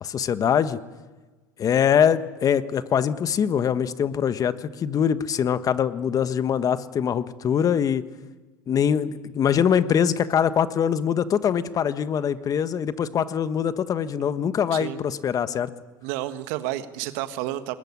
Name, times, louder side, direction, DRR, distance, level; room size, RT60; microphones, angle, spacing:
voice 1, 0.0-0.8 1.6-8.0 8.7-15.7, left 8 dB, 40° left, 13 dB, 1.4 m, -23 dB
voice 2, 16.0-17.8, right 14 dB, 75° right, 11 dB, 1.5 m, -30 dB
21.5 x 20.5 x 9.8 m, 1.3 s
supercardioid pair, 95°, 9 cm